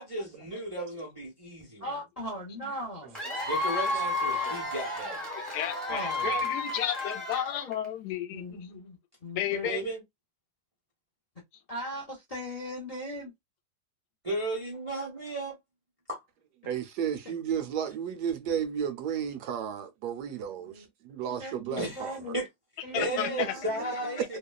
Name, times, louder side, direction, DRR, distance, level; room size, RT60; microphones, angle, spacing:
voice 1, 0.0-1.9 3.5-5.2 9.6-10.0 14.2-15.6 16.1-16.2 21.8-22.5 22.9-24.4, right 1 dB, 50° right, 0.3 m, -34 dB
voice 2, 1.8-3.2 5.6-6.4 8.3-9.7 11.7-13.3 17.2-17.3 18.5-18.6 20.7-20.9 21.4-22.4 22.8-24.2, left 1 dB, 50° left, 0.4 m, -39 dB
Cheering / Applause / Crowd, 3.1-7.9, left 1 dB, ahead, 0.6 m, -32 dB
voice 3, 5.5-8.6 9.4-9.8 22.9-23.5 24.2-24.3, left 11 dB, 75° left, 1.1 m, -32 dB
voice 4, 16.7-22.2 23.4-23.5 24.3-24.4, right 8 dB, 75° right, 1.1 m, -33 dB
3.0 x 2.1 x 2.2 m
omnidirectional pair, 1.9 m